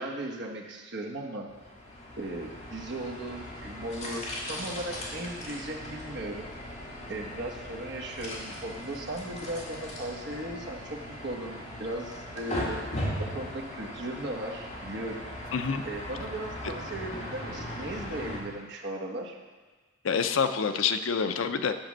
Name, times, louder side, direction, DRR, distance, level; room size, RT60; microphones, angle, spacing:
voice 1, 0.0-1.5 2.2-6.5 7.1-12.8 13.2-15.3 15.8-19.4, right 1 dB, 55° right, 0 dB, 1.1 m, -37 dB
sound 1, 1.5-18.4, left 1 dB, 35° left, 1.9 m, -38 dB
voice 2, 15.5-15.8 20.0-21.8, left 6 dB, 75° left, 8 dB, 0.5 m, -27 dB
9.1 x 5.2 x 6.1 m, 1.4 s
head